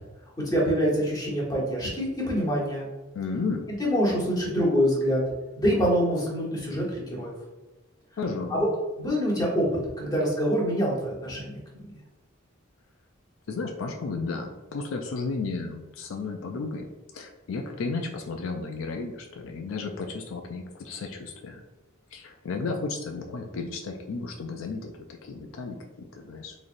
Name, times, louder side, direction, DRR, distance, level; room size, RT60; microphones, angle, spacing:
voice 1, 0.4-2.9 3.8-5.2 5.6-7.3 8.5-8.7 9.0-9.7 10.0-11.6, equal, 20° left, -5 dB, 1.2 m, -25 dB
voice 2, 3.1-3.7 8.2-8.6 13.5-16.9 17.1-21.6 22.1-24.9 25.2-26.6, left 4 dB, 75° left, 3 dB, 0.4 m, -33 dB
3.9 x 3.1 x 2.5 m, 1.2 s
head